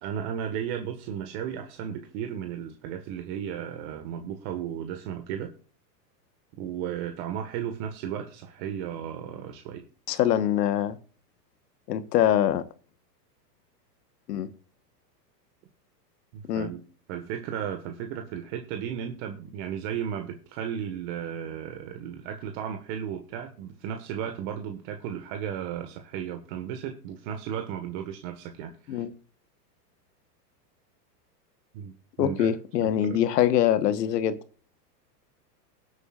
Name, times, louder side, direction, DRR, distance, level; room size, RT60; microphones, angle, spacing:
voice 1, 0.0-5.5 6.6-9.8 16.3-16.8 17.1-29.0 31.7-32.5 32.8-33.2, right 9 dB, 50° right, 1.7 m, -34 dB
voice 2, 10.1-11.0 11.9-12.6 14.3-14.5 16.5-16.7 28.9-29.1 32.2-34.4, left 10 dB, 75° left, 1.4 m, -24 dB
20.5 x 8.3 x 2.5 m
hypercardioid pair, 125°, 49 cm